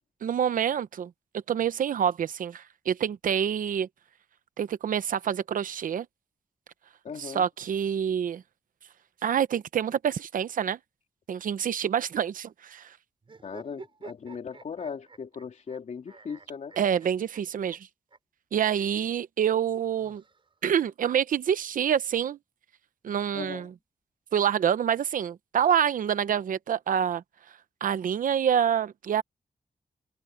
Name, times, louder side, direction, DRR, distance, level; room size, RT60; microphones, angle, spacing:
voice 1, 0.2-3.9 4.6-6.1 7.2-8.4 9.2-10.8 11.3-13.0 16.8-17.9 18.5-20.2 20.6-22.4 23.0-23.7 24.3-29.2, right 8 dB, 90° right, 0.8 m, -27 dB
voice 2, 7.0-7.4 13.4-16.7 23.3-23.7, left 6 dB, 60° left, 3.2 m, -38 dB
sound 1, 13.2-15.8 16.1-17.4 17.7-17.8 18.1-18.2 18.5-18.7 19.7-20.7, right 4 dB, 40° right, 6.0 m, -49 dB
wide cardioid pair, 135°, 14 cm